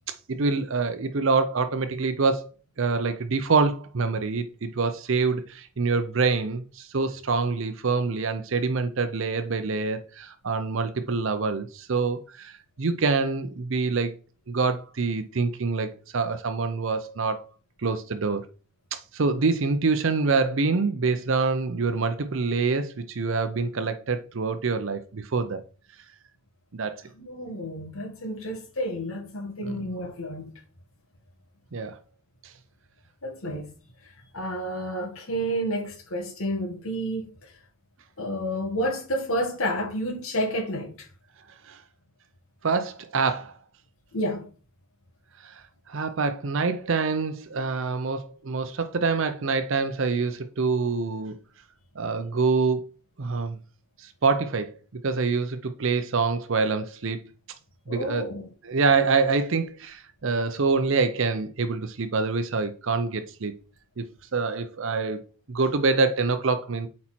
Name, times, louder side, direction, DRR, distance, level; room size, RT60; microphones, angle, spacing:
voice 1, 0.1-2.5 2.8-14.1 14.5-17.5 17.8-18.4 18.9-25.6 26.7-27.0 29.6-29.8 31.7-32.0 32.4-32.5 41.7-41.8 42.6-43.6 45.4-51.3 52.0-52.8 53.2-53.6 54.0-54.7 55.0-57.2 57.9-58.3 58.6-63.5 64.0-64.1 64.3-65.2 65.5-66.9, right 4 dB, 60° right, 0.6 m, -26 dB
voice 2, 27.2-30.5 33.2-33.7 34.0-37.5 38.2-41.1 44.1-44.5 57.9-58.5, equal, 70° left, 1.9 m, -30 dB
8.5 x 4.3 x 4.3 m
head